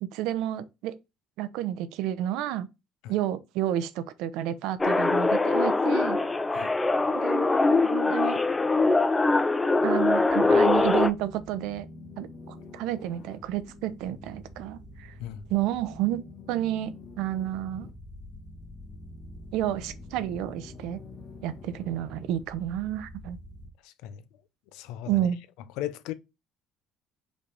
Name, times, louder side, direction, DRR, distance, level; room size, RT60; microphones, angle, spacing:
voice 1, 0.1-1.0 1.4-2.7 3.1-6.2 7.1-8.4 9.8-11.9 12.2-15.1 15.5-17.9 19.5-21.0 21.4-23.4 25.1-25.4, right 12 dB, 80° right, 0.8 m, -30 dB
sound 1, 4.8-11.1, left 3 dB, 10° left, 0.4 m, -23 dB
sound 2, 10.0-23.7, left 2 dB, 45° left, 1.5 m, -46 dB
voice 2, 23.8-24.2 24.7-25.3 25.8-26.1, left 12 dB, 90° left, 0.6 m, -36 dB
5.2 x 3.3 x 5.5 m
cardioid pair, 150°, 0 cm